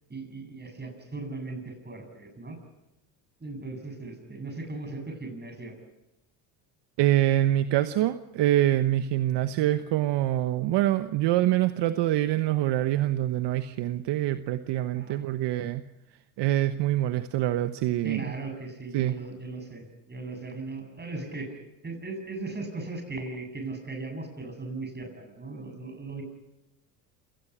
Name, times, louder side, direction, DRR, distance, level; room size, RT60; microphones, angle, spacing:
voice 1, 0.1-2.6 3.4-5.7 14.9-15.2 18.0-21.5 21.8-26.2, right 3 dB, 20° right, 5 dB, 8.0 m, -38 dB
voice 2, 7.0-15.8 16.4-18.2 18.9-19.2, right 14 dB, 60° right, 10 dB, 1.1 m, -25 dB
27.5 x 18.5 x 6.1 m, 0.92 s
supercardioid pair, 80°, 47 cm